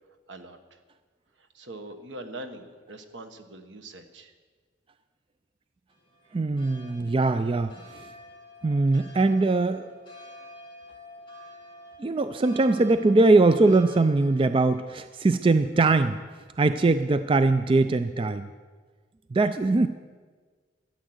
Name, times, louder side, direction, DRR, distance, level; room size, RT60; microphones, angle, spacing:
voice 1, 0.3-0.8 1.4-4.3, right 1 dB, 75° right, 7 dB, 1.3 m, -42 dB
sound 1, 5.9-14.8, equal, 25° left, 2.2 m, -49 dB
voice 2, 6.3-8.1 8.6-9.9 12.0-16.2 16.6-18.5 19.3-19.9, right 3 dB, 25° right, 11 dB, 0.3 m, -22 dB
12.5 x 10.5 x 7.9 m, 1.5 s
head